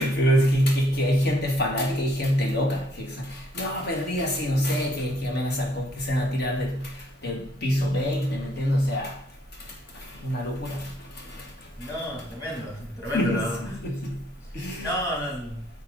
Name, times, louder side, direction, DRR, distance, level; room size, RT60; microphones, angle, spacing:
voice 1, 0.0-6.8 7.2-9.1 10.2-11.5 13.1-13.5 13.8-14.1 14.5-14.9, equal, 50° left, 1 dB, 2.2 m, -25 dB
voice 2, 11.8-13.8 14.4-14.5 14.8-15.7, equal, 15° left, -2 dB, 3.1 m, -31 dB
8.9 x 8.2 x 4.1 m, 0.65 s
head